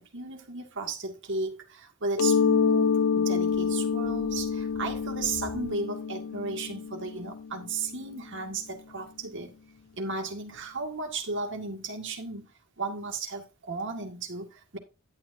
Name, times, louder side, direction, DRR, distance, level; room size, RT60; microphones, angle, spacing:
voice 1, 0.0-9.5 10.0-12.5 12.8-14.8, right 3 dB, 60° right, 2.1 m, -35 dB
Mallet percussion, 2.2-7.7, left 6 dB, 65° left, 0.5 m, -27 dB
sound 1, 3.1-5.8, right 1 dB, 30° right, 3.1 m, -50 dB
11.0 x 9.3 x 2.8 m
head